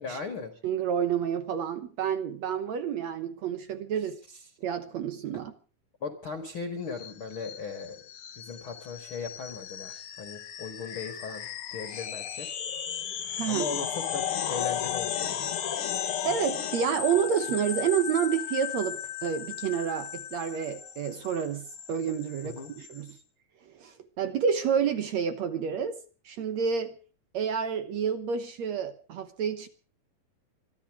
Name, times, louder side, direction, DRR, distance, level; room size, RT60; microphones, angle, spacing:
voice 1, 0.0-0.5 4.3-4.4 6.0-8.0 8.4-12.5 13.5-15.4 22.4-22.7, left 5 dB, 40° left, 7 dB, 2.0 m, -38 dB
voice 2, 0.6-4.2 4.6-5.5 13.4-13.7 16.2-23.2 23.7-26.0 26.3-26.9 27.3-29.7, right 7 dB, 70° right, 11 dB, 1.7 m, -29 dB
sound 1, 6.9-23.1, left 9 dB, 90° left, 1.2 m, -35 dB
25.0 x 12.0 x 4.8 m, 0.39 s
omnidirectional pair, 4.5 m